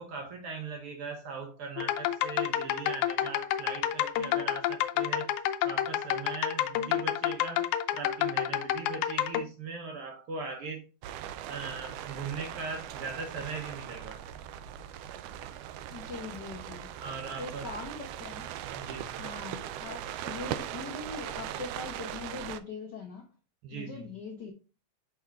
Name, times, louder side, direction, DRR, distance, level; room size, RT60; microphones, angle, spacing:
voice 1, 0.0-5.3 5.6-7.7 7.9-10.8 11.5-14.2 17.0-17.7 18.7-19.1 23.6-24.1, right 4 dB, 65° right, 1.5 m, -40 dB
sound 1, 1.8-9.4, left 11 dB, 90° left, 2.0 m, -29 dB
sound 2, 11.0-22.6, right 10 dB, 90° right, 1.3 m, -40 dB
voice 2, 15.9-16.9 17.4-18.5 19.2-23.3 23.7-24.5, left 4 dB, 70° left, 1.0 m, -41 dB
6.2 x 3.6 x 4.5 m
omnidirectional pair, 3.3 m